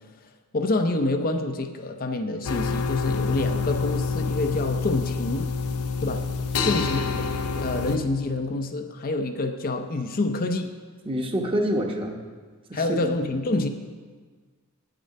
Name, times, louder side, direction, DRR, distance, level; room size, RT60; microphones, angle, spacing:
voice 1, 0.5-5.5 6.0-6.3 6.6-7.3 7.6-10.7 12.7-13.7, left 2 dB, 40° left, 6 dB, 0.6 m, -27 dB
sound 1, 2.4-8.0, left 4 dB, 85° left, 0.7 m, -27 dB
voice 2, 6.6-7.1 11.0-12.2 12.7-13.1, equal, 25° right, 2 dB, 1.1 m, -28 dB
8.7 x 8.3 x 6.5 m, 1.5 s
head